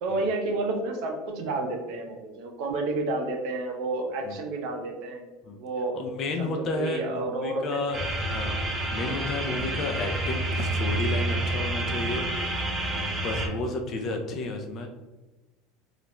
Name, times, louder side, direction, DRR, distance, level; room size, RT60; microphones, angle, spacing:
voice 1, 0.0-5.3 5.6-5.9 6.4-7.8, right 2 dB, 65° right, 2 dB, 0.5 m, -30 dB
voice 2, 5.9-8.0 8.3-12.8 13.1-14.9, left 3 dB, 45° left, 3 dB, 0.4 m, -32 dB
sound 1, 7.9-13.5, right 1 dB, 15° right, 0.5 m, -29 dB
2.4 x 2.0 x 2.9 m, 1.1 s
supercardioid pair, 110°, 0 cm